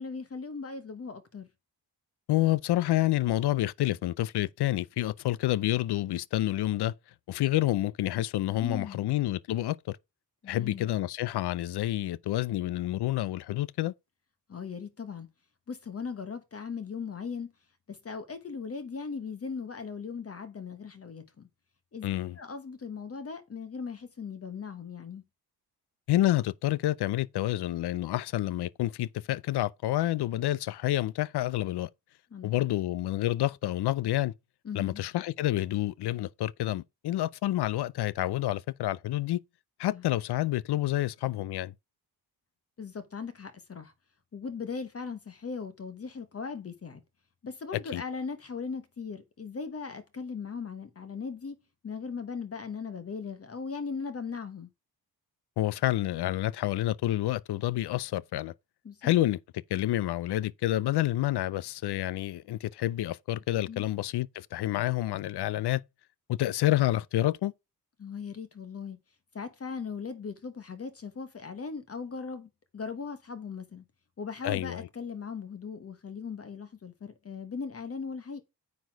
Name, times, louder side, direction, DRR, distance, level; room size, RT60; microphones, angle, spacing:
voice 1, 0.0-1.5 8.5-9.1 10.4-10.9 14.5-15.3 15.7-17.5 17.9-21.5 21.9-22.1 22.4-25.2 32.3-32.5 34.6-35.0 39.9-40.0 42.8-43.9 44.3-47.0 47.4-51.6 51.8-54.7 58.8-59.1 63.7-63.9 68.0-69.0 69.3-73.8 74.2-78.4, left 5 dB, 35° left, 1.1 m, -38 dB
voice 2, 2.3-6.9 7.3-10.0 10.5-13.9 22.0-22.4 26.1-31.9 32.4-34.3 34.7-39.4 39.8-41.7 47.9-48.0 55.6-58.5 59.0-59.4 59.7-65.8 66.3-67.5 74.4-74.9, left 14 dB, 75° left, 0.5 m, -28 dB
9.4 x 4.2 x 4.6 m
wide cardioid pair, 130°, 40 cm